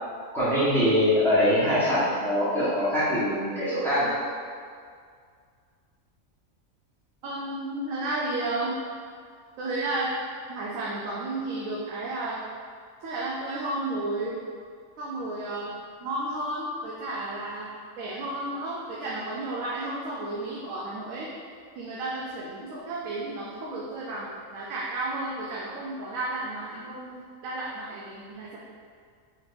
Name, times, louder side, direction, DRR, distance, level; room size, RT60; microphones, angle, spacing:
voice 1, 0.3-4.1, equal, ahead, -12 dB, 1.0 m, -23 dB
voice 2, 7.2-8.7 9.6-10.1 10.5-12.4 13.0-14.4 15.0-15.7 16.0-21.3 21.8-28.6, right 2 dB, 80° right, -5 dB, 1.0 m, -32 dB
4.1 x 3.1 x 2.6 m, 2.1 s
omnidirectional pair, 1.4 m